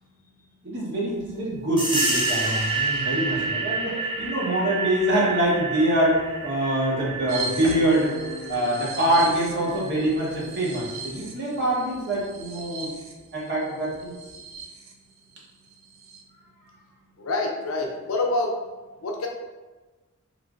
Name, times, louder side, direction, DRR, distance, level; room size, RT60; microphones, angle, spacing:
voice 1, 0.6-8.2 8.5-13.0 13.3-14.2, right 1 dB, 50° right, -5 dB, 0.9 m, -24 dB
sound 1, 1.8-10.1, right 3 dB, 20° right, 0.5 m, -29 dB
sound 2, 7.3-14.9 15.4-15.5 15.7-16.2, right 3 dB, 70° right, 0.5 m, -37 dB
voice 2, 17.2-18.5 19.0-19.3, left 2 dB, 80° left, 1 dB, 0.6 m, -26 dB
3.1 x 3.0 x 2.4 m, 1.2 s
head